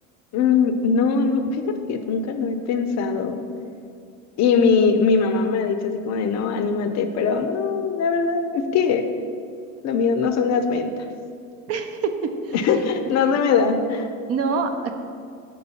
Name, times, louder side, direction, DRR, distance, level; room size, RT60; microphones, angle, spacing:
voice 1, 0.3-3.4 4.4-9.1 9.8-11.1 12.5-14.1, left 5 dB, 40° left, 8 dB, 0.6 m, -21 dB
voice 2, 11.7-12.6 14.3-14.9, right 5 dB, 40° right, 7 dB, 0.5 m, -25 dB
5.3 x 3.9 x 5.7 m, 2.4 s
hypercardioid pair, 80°, 40 cm